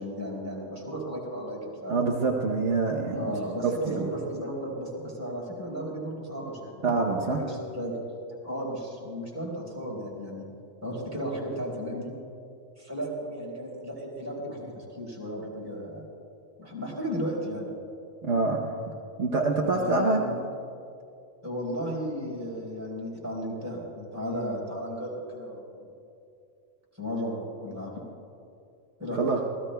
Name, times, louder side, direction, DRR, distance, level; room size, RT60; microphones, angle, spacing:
voice 1, 0.0-2.0 3.1-6.8 7.3-8.0 8.4-10.5 10.8-12.1 12.8-16.0 16.6-17.7 19.8-20.4 21.4-25.9 27.0-27.9 29.0-29.2, equal, 10° right, -4 dB, 4.4 m, -34 dB
voice 2, 1.9-3.3 3.6-4.1 6.8-7.4 18.3-18.8 19.2-20.2 29.1-29.4, right 3 dB, 65° right, 0 dB, 1.3 m, -25 dB
27.0 x 18.5 x 2.3 m, 2.5 s
omnidirectional pair, 1.3 m